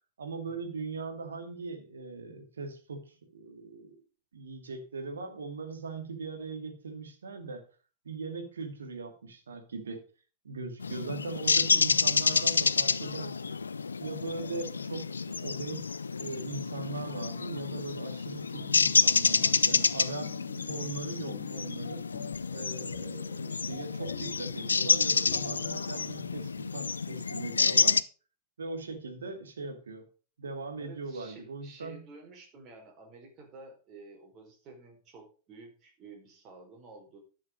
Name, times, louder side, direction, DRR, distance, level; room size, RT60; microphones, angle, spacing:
voice 1, 0.2-3.9 4.3-7.6 8.0-10.0 10.4-13.5 14.0-20.4 20.7-22.0 22.5-28.0 28.6-30.1 30.4-32.1, right 4 dB, 70° right, 5 dB, 2.4 m, -40 dB
sound 1, 10.8-28.0, left 5 dB, 75° left, 0.4 m, -29 dB
sound 2, 18.5-26.8, left 10 dB, 40° left, 1.1 m, -48 dB
voice 2, 30.8-37.2, right 3 dB, 35° right, 1 dB, 4.7 m, -51 dB
11.5 x 6.4 x 5.2 m, 0.36 s
figure-of-eight pair, 90°, 0 cm